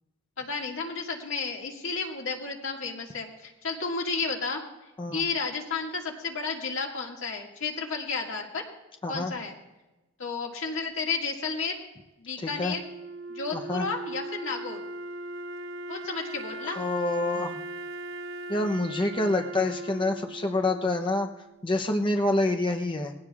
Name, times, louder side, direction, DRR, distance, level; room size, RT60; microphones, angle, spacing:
voice 1, 0.4-4.6 5.1-8.6 9.1-9.5 10.2-11.8 12.2-12.8 13.3-14.8 15.9-16.8, left 4 dB, 75° left, 0 dB, 2.0 m, -32 dB
voice 2, 9.0-9.3 12.4-12.7 13.5-13.9 16.6-17.6 18.5-21.3 21.6-23.1, left 2 dB, 25° left, 3 dB, 0.7 m, -27 dB
Wind instrument woodwind instrument, 12.5-21.5, right 1 dB, 75° right, 0.6 m, -39 dB
20.0 x 16.0 x 2.4 m, 1.1 s
head